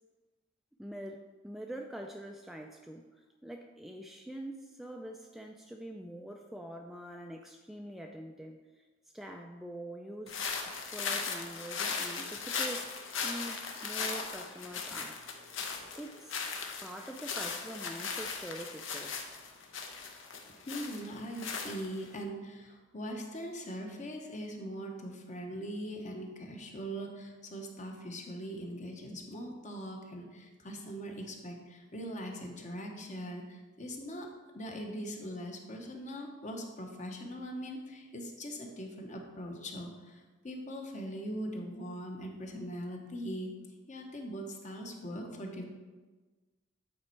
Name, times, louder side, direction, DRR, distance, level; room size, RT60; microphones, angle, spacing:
voice 1, 0.8-8.9 9.1-10.4 10.9-12.9 13.2-15.3 16.0-16.5 16.8-19.3, right 1 dB, ahead, 2 dB, 0.3 m, -44 dB
sound 1, 10.3-22.2, left 5 dB, 70° left, 0.8 m, -38 dB
voice 2, 20.5-34.3 34.5-43.5 43.9-45.6, equal, 40° left, 2 dB, 1.0 m, -41 dB
8.7 x 4.2 x 4.5 m, 1.3 s
head